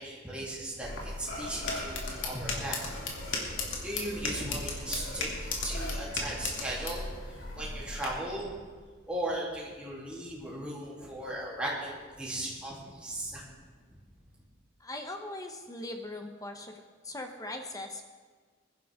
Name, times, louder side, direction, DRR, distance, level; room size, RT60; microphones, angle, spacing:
voice 1, 0.0-2.8 3.8-8.5 9.1-13.4, right 1 dB, 5° right, -6 dB, 3.0 m, -37 dB
sound 1, 0.8-8.1, left 3 dB, 80° left, 2.4 m, -36 dB
Burping eructation, 1.3-2.6 2.8-4.7 5.1-5.2 5.7-5.9 6.5-7.0, left 1 dB, 60° left, 4.1 m, -43 dB
voice 2, 14.8-16.7 17.0-18.0, left 1 dB, 20° left, 4 dB, 0.9 m, -40 dB
21.0 x 11.0 x 3.6 m, 1.5 s
head